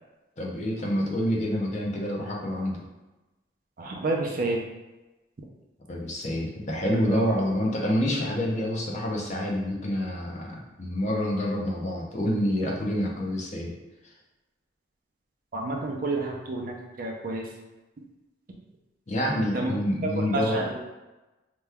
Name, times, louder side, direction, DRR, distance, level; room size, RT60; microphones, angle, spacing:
voice 1, 0.4-2.8 5.9-13.7 19.1-20.6, equal, 40° left, -2 dB, 0.6 m, -27 dB
voice 2, 3.8-4.6 7.1-7.3 15.5-17.5 19.5-19.7 20.1-20.9, right 2 dB, 50° right, 0 dB, 0.5 m, -29 dB
2.9 x 2.2 x 3.4 m, 1.1 s
head